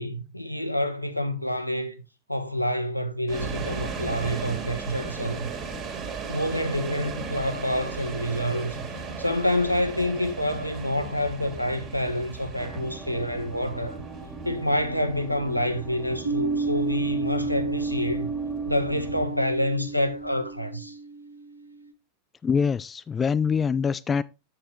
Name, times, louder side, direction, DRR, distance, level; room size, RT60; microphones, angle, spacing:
voice 1, 0.0-2.0 2.3-5.5 6.3-8.9 9.2-14.0 14.4-18.3 18.6-21.0, left 1 dB, 90° left, 0.8 m, -27 dB
sound 1, 3.3-20.3, right 5 dB, 35° right, 1.9 m, -37 dB
sound 2, 12.6-19.2, right 3 dB, 15° right, 1.3 m, -40 dB
sound 3, 16.2-21.8, right 3 dB, 80° right, 0.9 m, -31 dB
voice 2, 22.4-24.2, left 6 dB, 20° left, 0.3 m, -24 dB
7.5 x 7.2 x 3.2 m
figure-of-eight pair, 90°, 0 cm